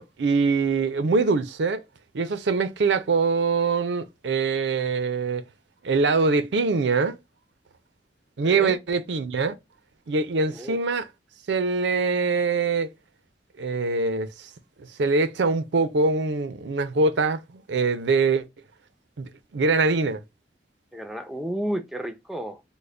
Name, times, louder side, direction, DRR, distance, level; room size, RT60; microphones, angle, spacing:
voice 1, 0.0-1.8 2.1-5.4 5.8-7.2 8.4-9.6 10.1-11.1 11.5-12.9 13.6-14.3 15.0-17.4 17.7-18.4 19.2-20.2, right 4 dB, 85° right, 0.5 m, -23 dB
voice 2, 8.4-8.8 10.5-10.8 20.9-22.6, equal, ahead, 0.5 m, -32 dB
3.8 x 2.1 x 3.2 m
head